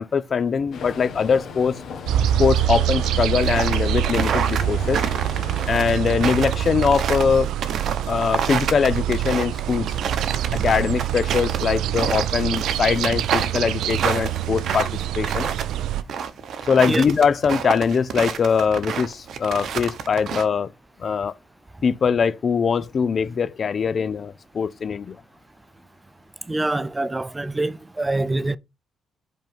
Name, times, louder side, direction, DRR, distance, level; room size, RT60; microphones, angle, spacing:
voice 1, 0.0-1.8 2.4-5.0 5.7-7.5 8.1-10.0 10.6-15.5 16.7-20.7 21.0-21.3 21.8-25.2, left 6 dB, 45° left, 0.5 m, -22 dB
sound 1, 0.7-5.8, left 6 dB, 65° left, 1.3 m, -36 dB
sound 2, 2.1-16.0, right 12 dB, 85° right, 0.4 m, -25 dB
sound 3, 3.4-20.5, right 7 dB, 65° right, 0.8 m, -28 dB
voice 2, 26.5-28.6, right 2 dB, 15° right, 0.5 m, -25 dB
5.3 x 3.8 x 5.1 m
cardioid pair, 90°, 0 cm